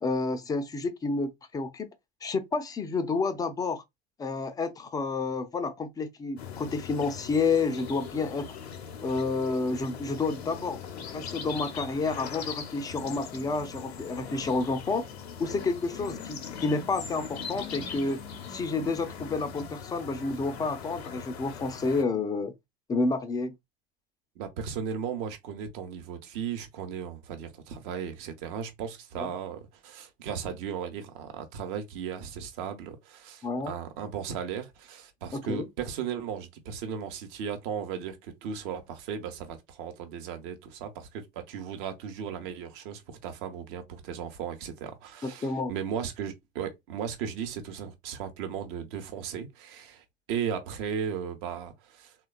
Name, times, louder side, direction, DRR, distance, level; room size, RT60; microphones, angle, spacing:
voice 1, 0.0-1.9 2.2-3.8 4.2-8.5 9.0-10.8 11.1-15.0 15.4-18.2 18.5-22.5 22.9-23.5 29.2-29.3 33.4-33.7 35.3-35.7 45.2-45.7, left 3 dB, 10° left, 0.4 m, -30 dB
sound 1, 6.4-22.0, left 7 dB, 75° left, 0.6 m, -40 dB
voice 2, 24.4-52.2, right 7 dB, 55° right, 0.8 m, -36 dB
3.2 x 2.2 x 2.3 m
figure-of-eight pair, 70°, 33 cm